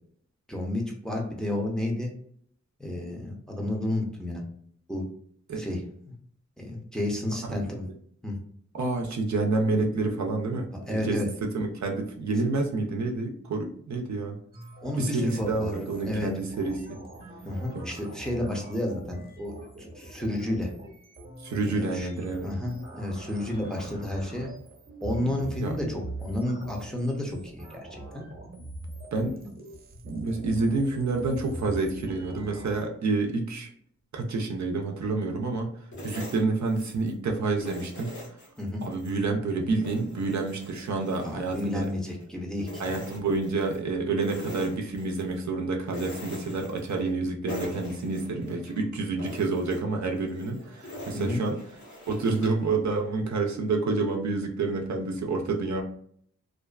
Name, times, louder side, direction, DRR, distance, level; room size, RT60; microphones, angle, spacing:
voice 1, 0.5-2.1 2.8-4.4 4.9-5.0 5.6-5.8 6.6-7.9 8.2-8.4 10.7-11.3 14.8-15.7 16.0-16.3 17.4-20.7 21.6-22.1 22.4-24.5 25.0-28.2 38.6-38.8 41.2-43.0 51.1-51.4, left 1 dB, ahead, 0 dB, 0.6 m, -31 dB
voice 2, 8.7-14.4 15.0-17.0 17.7-17.9 21.4-22.6 25.6-25.7 29.1-29.3 30.0-33.7 34.1-35.7 36.0-38.1 38.8-41.9 42.8-51.6 52.1-55.8, right 3 dB, 70° right, 2 dB, 0.5 m, -28 dB
sound 1, 14.5-32.8, right 1 dB, 30° right, 0.8 m, -43 dB
sound 2, 35.9-37.2 37.6-39.2 39.6-42.3 42.6-43.8 44.2-45.4 45.9-47.2 47.5-48.8 49.2-52.7, equal, 75° left, 1.1 m, -43 dB
2.4 x 2.3 x 2.2 m, 0.63 s
wide cardioid pair, 80°, 29 cm